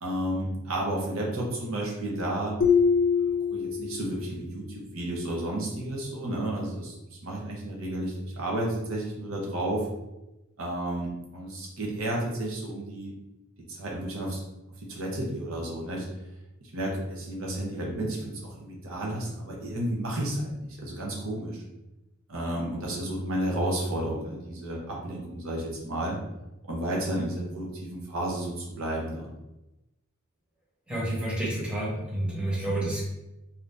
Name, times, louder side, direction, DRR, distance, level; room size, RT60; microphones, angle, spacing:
voice 1, 0.0-2.6 3.2-3.3 3.5-6.9 7.2-9.9 10.6-13.1 13.7-14.4 14.8-16.1 16.7-21.6 22.3-26.2 26.6-29.3, right 1 dB, 70° right, -2 dB, 0.8 m, -32 dB
sound 1, 2.6-4.3, left 6 dB, 40° left, 0.4 m, -24 dB
voice 2, 30.9-33.0, right 1 dB, 5° right, -7 dB, 1.0 m, -29 dB
2.8 x 2.5 x 3.4 m, 0.96 s
head